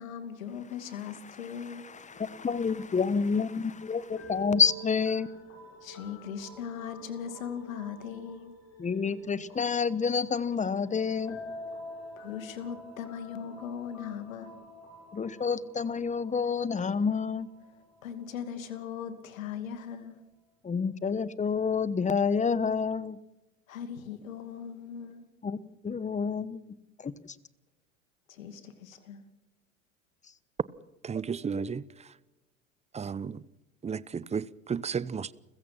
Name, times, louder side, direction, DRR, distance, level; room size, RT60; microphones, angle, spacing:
voice 1, 0.0-1.9 5.8-8.5 12.2-14.6 18.0-20.2 23.7-25.2 28.3-29.2, left 8 dB, 75° left, 2.6 m, -39 dB
sound 1, 1.9-19.3, equal, 40° left, 6.4 m, -48 dB
voice 2, 2.1-5.3 8.8-11.4 15.1-17.5 20.6-23.2 25.4-25.6 25.8-26.6 27.0-27.1, left 5 dB, 20° left, 1.1 m, -28 dB
voice 3, 31.0-31.8 32.9-33.4 33.8-35.3, right 6 dB, 15° right, 0.8 m, -33 dB
29.5 x 16.0 x 6.0 m
hypercardioid pair, 85°, 40 cm